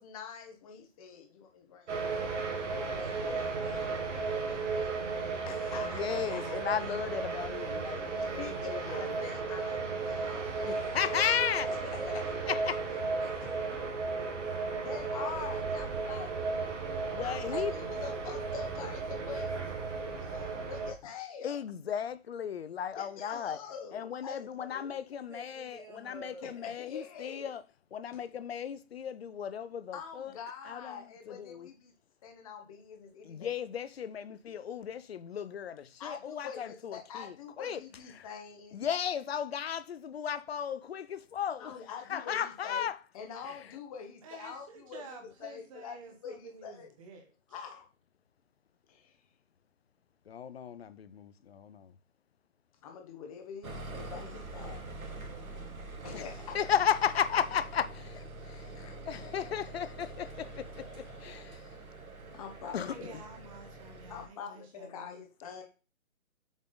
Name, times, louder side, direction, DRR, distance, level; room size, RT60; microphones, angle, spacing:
voice 1, 0.0-2.5 3.4-3.5 3.8-3.9 4.2-4.4 5.5-6.6 8.2-10.3 11.9-12.2 13.4-13.5 14.8-16.3 17.2-19.6 20.2-21.6 23.0-24.9 26.4-27.5 28.1-28.2 29.9-31.9 32.2-33.5 36.0-38.8 41.6-42.9 43.1-46.0 46.2-46.9 47.5-47.9 48.9-49.2 52.8-54.8 56.0-56.6 58.4-58.9 60.4-61.5 62.3-63.1 64.1-65.6, left 7 dB, 25° left, 1.3 m, -45 dB
sound 1, 1.9-20.9, right 4 dB, 55° right, 2.0 m, -34 dB
voice 2, 3.0-5.5 10.2-12.3 12.6-14.4 15.3-15.6 25.1-26.6, right 1 dB, 5° right, 1.2 m, -51 dB
voice 3, 5.8-9.1 10.6-11.7 12.5-12.8 17.1-17.7 21.4-23.6 23.9-27.6 27.9-30.3 30.7-31.7 33.2-37.8 38.2-38.3 38.7-41.7 42.1-43.0 43.4-43.6 50.3-51.9 56.1-56.3 56.5-58.7 59.1-61.7 62.7-63.2, left 8 dB, 45° left, 0.6 m, -35 dB
voice 4, 44.2-47.6 54.6-55.8 59.1-59.6 62.6-65.2, right 3 dB, 25° right, 1.3 m, -51 dB
sound 2, 53.6-64.3, right 2 dB, 85° right, 1.8 m, -45 dB
7.2 x 3.7 x 3.9 m
hypercardioid pair, 155°, 42 cm